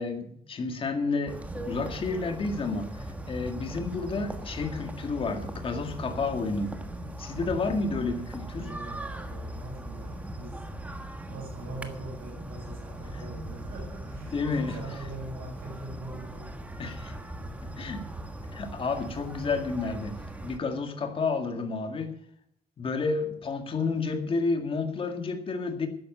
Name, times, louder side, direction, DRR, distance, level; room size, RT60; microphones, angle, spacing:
voice 1, 0.0-1.4 1.6-6.8 7.2-8.7 14.3-14.8 16.8-17.1 17.8-18.0 18.5-20.2 20.4-22.1 22.8-25.9, left 4 dB, 35° left, 6 dB, 2.0 m, -30 dB
sound 1, 1.3-20.6, right 1 dB, 10° right, 1.3 m, -39 dB
voice 2, 8.6-10.9 11.3-16.6 17.7-18.0 18.3-18.4, right 2 dB, 60° right, 0 dB, 7.1 m, -43 dB
13.0 x 10.0 x 8.0 m, 0.69 s
cardioid pair, 175°, 17 cm